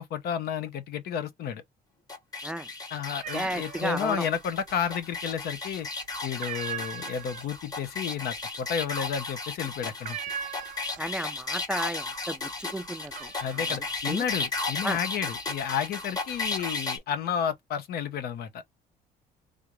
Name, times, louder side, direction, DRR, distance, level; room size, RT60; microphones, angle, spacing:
voice 1, 0.0-1.6 2.9-5.9 6.2-10.2 13.4-18.6, left 8 dB, 65° left, 0.8 m, -31 dB
sound 1, 2.1-17.0, left 3 dB, 20° left, 1.0 m, -35 dB
sound 2, 3.2-4.1 4.4-5.1 5.5-5.9 6.2-11.3 11.6-12.2 12.5-15.6 16.1-16.8, right 8 dB, 50° right, 0.7 m, -40 dB
voice 2, 3.3-4.3 11.0-13.3 14.1-14.2 14.8-15.0, right 1 dB, 5° right, 0.4 m, -33 dB
3.4 x 2.5 x 3.0 m
cardioid pair, 110°, 17 cm